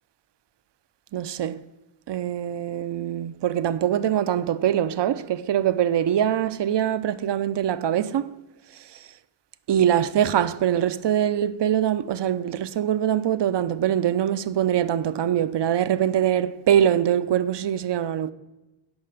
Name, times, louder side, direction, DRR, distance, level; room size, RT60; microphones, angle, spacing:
voice 1, 1.1-1.6 2.1-8.3 9.7-18.3, right 10 dB, 65° right, 0.6 m, -23 dB
11.0 x 5.7 x 6.7 m
wide cardioid pair, 145°, 47 cm